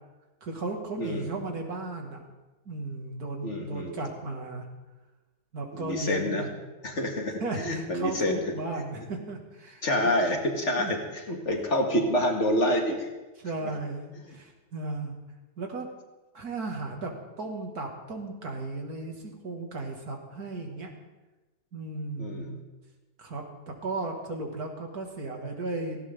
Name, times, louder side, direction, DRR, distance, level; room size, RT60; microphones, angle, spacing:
voice 1, 0.4-2.2 2.7-4.6 5.5-6.6 7.4-10.2 10.8-10.9 13.4-15.2 15.6-15.9 16.3-20.9 21.7-22.6 23.2-26.0, right 3 dB, 70° right, 2 dB, 2.7 m, -35 dB
voice 2, 1.0-1.4 3.4-4.0 5.7-6.4 6.8-8.5 9.8-11.0 11.3-13.1 14.3-14.4 22.2-22.6, left 1 dB, 45° left, 2 dB, 2.3 m, -27 dB
18.5 x 16.5 x 3.8 m, 1.1 s
omnidirectional pair, 1.7 m